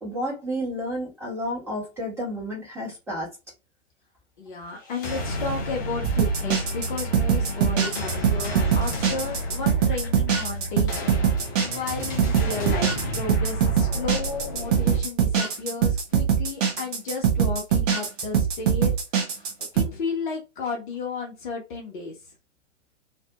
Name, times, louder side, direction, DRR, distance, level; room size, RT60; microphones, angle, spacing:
voice 1, 0.0-3.3, equal, 5° right, 1.3 m, -31 dB
voice 2, 4.4-18.9 19.4-22.2, left 4 dB, 40° left, 0.7 m, -33 dB
sound 1, 4.8-15.0, left 1 dB, 20° left, 0.4 m, -32 dB
sound 2, 6.0-19.8, right 8 dB, 30° right, 0.8 m, -23 dB
2.6 x 2.6 x 2.3 m
figure-of-eight pair, 115°, 37 cm